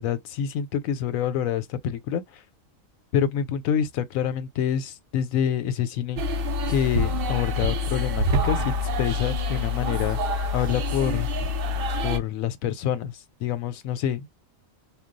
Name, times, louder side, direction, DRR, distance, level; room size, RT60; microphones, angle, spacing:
voice 1, 0.0-2.4 3.1-6.2 6.7-10.2 10.5-11.3 12.0-13.1 13.4-14.3, left 9 dB, 90° left, 1.0 m, -27 dB
sound 1, 6.2-12.2, left 2 dB, 60° right, 0.6 m, -26 dB
2.3 x 2.2 x 3.8 m
omnidirectional pair, 1.4 m